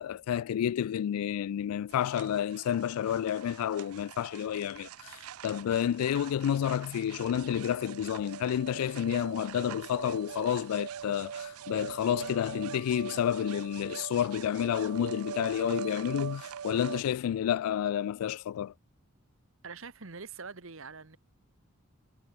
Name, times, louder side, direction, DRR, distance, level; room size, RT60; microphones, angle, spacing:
voice 1, 0.0-18.7, left 9 dB, 85° left, 0.3 m, -30 dB
sound 1, 1.9-17.0, right 8 dB, 80° right, 0.5 m, -43 dB
Dog / Bird, 5.9-13.9, right 2 dB, 40° right, 2.0 m, -65 dB
voice 2, 19.6-21.2, right 4 dB, 65° right, 1.3 m, -44 dB
head